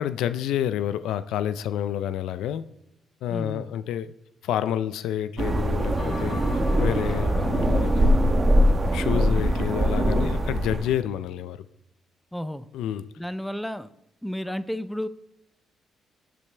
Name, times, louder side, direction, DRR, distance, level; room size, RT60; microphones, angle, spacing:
voice 1, 0.0-2.6 3.2-4.1 4.4-6.4 6.8-8.1 8.9-11.7 12.7-13.1, left 10 dB, 85° left, 14 dB, 0.4 m, -29 dB
voice 2, 3.3-3.7 12.3-12.7 13.2-13.9 14.2-15.1, equal, 5° left, 14 dB, 0.6 m, -32 dB
sound 1, 5.4-10.9, equal, 35° right, 1.3 m, -22 dB
Bell, 6.0-10.6, left 1 dB, 45° left, 4.8 m, -38 dB
16.0 x 8.6 x 3.4 m, 0.83 s
cardioid pair, 75°, 0 cm